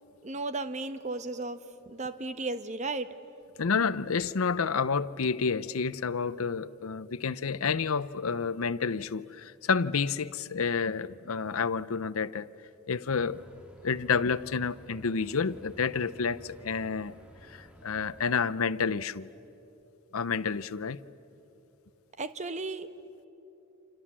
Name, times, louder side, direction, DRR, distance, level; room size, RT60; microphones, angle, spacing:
voice 1, 0.2-3.1 22.2-22.9, right 3 dB, 35° right, 11 dB, 1.0 m, -35 dB
voice 2, 3.6-12.5 12.9-13.4 13.8-17.1 17.8-19.3 20.1-21.0, left 5 dB, 80° left, 17 dB, 0.7 m, -29 dB
sound 1, 13.1-18.2, equal, 5° right, 2.1 m, -54 dB
29.0 x 27.5 x 7.5 m, 3.0 s
head